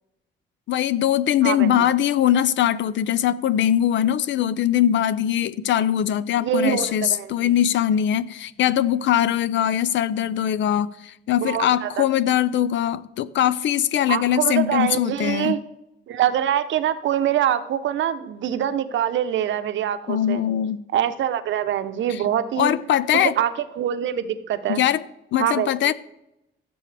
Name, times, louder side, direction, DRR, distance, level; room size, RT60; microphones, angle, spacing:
voice 1, 0.7-15.6 20.1-20.8 22.6-23.3 24.7-25.0 25.3-25.9, left 10 dB, 70° left, 0.6 m, -21 dB
voice 2, 1.4-1.9 6.4-7.5 11.4-12.0 14.1-15.6 16.1-20.5 20.9-22.7 23.2-23.5 23.8-24.8 25.4-25.9, right 10 dB, 70° right, 0.8 m, -24 dB
15.5 x 7.0 x 3.3 m
cardioid pair, 90°, 20 cm